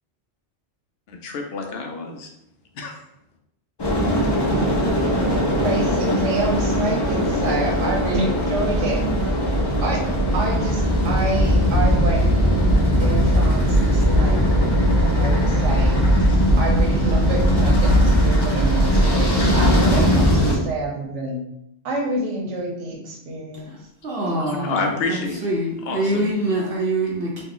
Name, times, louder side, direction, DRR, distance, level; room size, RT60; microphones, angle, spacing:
voice 1, 1.1-2.3 2.7-2.9 24.5-25.4 25.8-26.3, left 3 dB, 60° left, 3 dB, 0.8 m, -28 dB
sound 1, 3.8-20.6, equal, 30° left, 0.4 m, -19 dB
voice 2, 5.6-9.0 9.8-12.3 13.0-14.4 15.1-16.1 16.6-21.4 21.8-23.7 24.2-24.3, right 2 dB, 80° right, -1 dB, 1.1 m, -28 dB
voice 3, 24.0-27.4, right 1 dB, 60° right, -3 dB, 0.8 m, -25 dB
3.1 x 2.2 x 3.7 m, 0.78 s
omnidirectional pair, 1.2 m